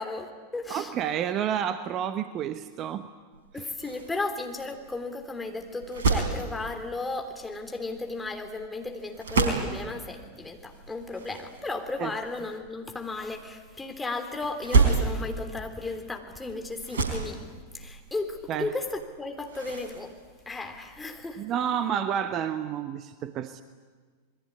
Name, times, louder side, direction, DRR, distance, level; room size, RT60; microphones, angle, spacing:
voice 1, 0.0-0.9 3.5-17.4 17.7-20.1 20.4-21.6, left 3 dB, 10° left, 4 dB, 3.3 m, -35 dB
voice 2, 0.7-3.1 12.0-12.1 18.5-18.7 21.4-23.6, right 9 dB, 35° right, 11 dB, 1.0 m, -30 dB
sound 1, 3.3-21.3, right 4 dB, 65° right, 4.5 m, -32 dB
27.5 x 21.0 x 9.8 m, 1.5 s
figure-of-eight pair, 90°, 0 cm